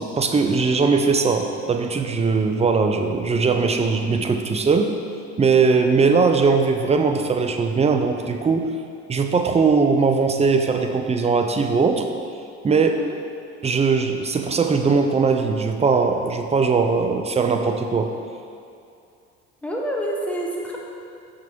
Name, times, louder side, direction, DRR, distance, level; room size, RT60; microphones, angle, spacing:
voice 1, 0.0-4.9 5.4-8.7 9.1-12.1 12.6-13.0 13.6-18.1, right 4 dB, 20° right, 5 dB, 0.6 m, -20 dB
voice 2, 19.6-20.8, equal, 5° left, -2 dB, 1.1 m, -27 dB
5.9 x 3.7 x 6.0 m, 2.6 s
supercardioid pair, 75°, 31 cm